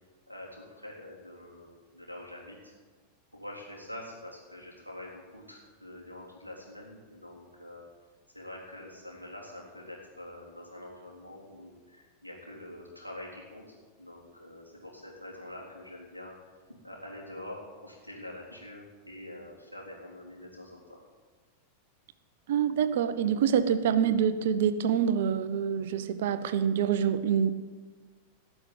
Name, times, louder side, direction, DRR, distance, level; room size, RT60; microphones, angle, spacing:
voice 1, 0.3-2.6 3.3-7.8 8.3-13.6 14.0-16.3 16.8-21.0, left 1 dB, 90° left, -4 dB, 3.8 m, -45 dB
voice 2, 22.5-27.5, right 8 dB, 55° right, 12 dB, 0.8 m, -26 dB
17.5 x 6.2 x 9.0 m, 1.5 s
figure-of-eight pair, 90°, 0 cm